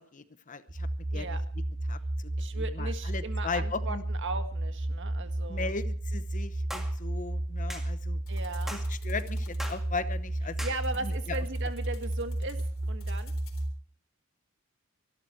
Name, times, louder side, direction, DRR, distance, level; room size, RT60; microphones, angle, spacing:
voice 1, 0.0-1.4 1.9-4.0 5.5-8.2 8.7-10.6 11.0-11.4, left 4 dB, 35° left, 13 dB, 0.8 m, -38 dB
sound 1, 0.7-13.7, right 1 dB, 25° right, 0.8 m, -33 dB
voice 2, 1.1-1.4 2.4-5.7 8.3-8.8 10.6-13.3, right 3 dB, 60° right, 8 dB, 1.8 m, -38 dB
sound 2, 6.7-6.9 7.7-7.9 8.7-8.9 9.6-9.8 10.6-10.8, equal, ahead, 2.1 m, -39 dB
sound 3, 8.3-13.7, left 7 dB, 70° left, 3.9 m, -57 dB
24.0 x 12.0 x 4.5 m, 0.43 s
head